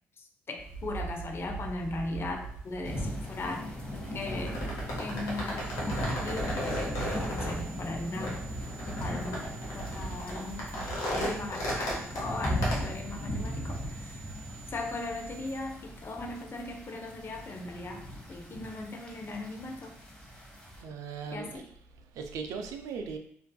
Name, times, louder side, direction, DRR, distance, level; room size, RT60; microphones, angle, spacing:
voice 1, 0.2-3.7 4.1-4.6 5.0-8.4 9.0-14.3 14.7-19.9 21.3-21.7, left 2 dB, 40° left, 3 dB, 0.5 m, -38 dB
sound 1, 0.6-12.8, equal, 75° left, 0.8 m, -36 dB
sound 2, 2.8-20.8, equal, 20° left, 0.9 m, -38 dB
sound 3, 5.6-15.6, right 10 dB, 25° right, 1.0 m, -52 dB
voice 2, 20.8-21.6 22.1-23.2, right 5 dB, 70° right, 5 dB, 0.3 m, -38 dB
2.5 x 2.5 x 2.2 m, 0.65 s
hypercardioid pair, 45°, 6 cm